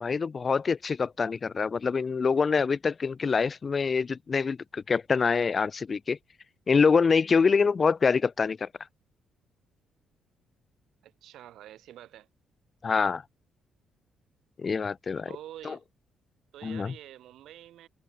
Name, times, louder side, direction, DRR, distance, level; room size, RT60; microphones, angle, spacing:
voice 1, 0.0-6.2 6.7-8.7 12.8-13.2 14.6-15.3 15.7-15.8 16.6-16.9, left 5 dB, 40° left, 0.7 m, -25 dB
voice 2, 11.0-12.3 15.3-15.8 16.5-17.9, right 12 dB, 80° right, 4.5 m, -47 dB
cardioid pair, 90°, 0 cm